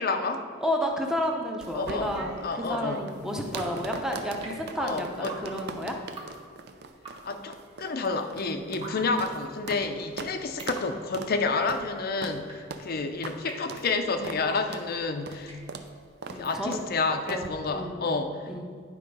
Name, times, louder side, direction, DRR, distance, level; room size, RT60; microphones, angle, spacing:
voice 1, 0.0-0.4 1.7-2.1 2.4-3.1 4.8-5.3 7.2-15.5 16.3-18.5, left 3 dB, 50° left, 7 dB, 0.5 m, -29 dB
voice 2, 0.6-6.0 16.3-16.8 17.3-17.4 17.7-18.0 18.5-18.7, equal, 5° right, 1 dB, 0.7 m, -31 dB
sound 1, 1.6-9.9 10.2-10.3 10.6-10.9 11.1-11.3 11.7-11.9 12.2-12.4 12.7-12.9 13.2-13.4 13.7-13.9 14.2-14.4 14.7-14.9 15.3-15.4 15.7-15.9 16.2-16.4 16.7-16.9 17.3-17.5, right 4 dB, 55° right, 0.5 m, -40 dB
Drip, 1.8-17.1, right 2 dB, 30° right, 1.4 m, -48 dB
9.8 x 3.7 x 5.4 m, 2.1 s
head